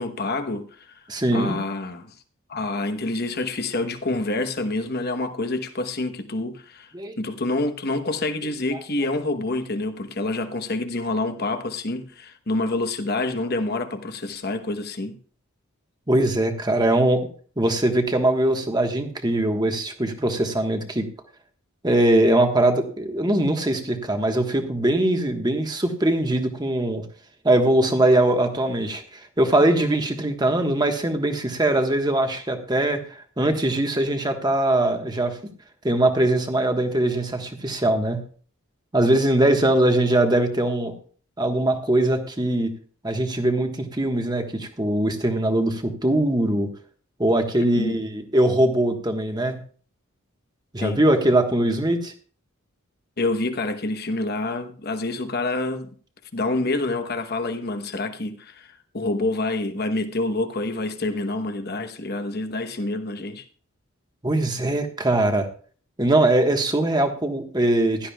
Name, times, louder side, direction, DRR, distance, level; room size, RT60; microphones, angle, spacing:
voice 1, 0.0-1.0 1.3-2.1 2.5-6.9 7.2-15.2 47.6-48.0 50.8-51.0 53.2-55.9 56.3-58.7 58.9-63.4, left 2 dB, 50° left, 1.1 m, -27 dB
voice 2, 1.1-1.6 6.9-7.2 16.1-17.3 17.6-21.1 21.8-27.0 27.4-35.4 35.8-38.2 38.9-40.9 41.4-42.7 43.0-46.7 47.2-49.6 50.7-52.1 64.2-65.5 66.0-68.1, right 1 dB, 20° right, 1.4 m, -21 dB
16.0 x 12.0 x 2.4 m
head